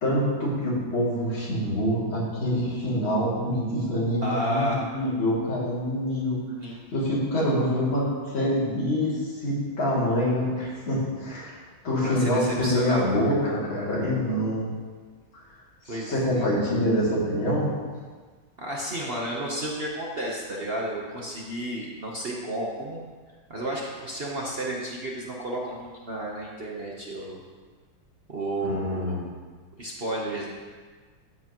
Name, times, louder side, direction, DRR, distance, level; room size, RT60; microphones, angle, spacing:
voice 1, 0.0-6.4 6.9-8.1 8.3-11.6 11.8-14.7 15.3-15.4 15.8-17.7 28.6-29.2, equal, 85° left, -7 dB, 3.5 m, -26 dB
voice 2, 4.2-4.9 6.6-6.8 7.4-7.8 12.0-13.6 15.9-16.7 18.6-23.0 23.5-27.4 28.3-29.2 29.8-30.5, right 1 dB, 40° right, -3 dB, 1.0 m, -32 dB
13.0 x 8.1 x 3.0 m, 1.5 s
omnidirectional pair, 2.1 m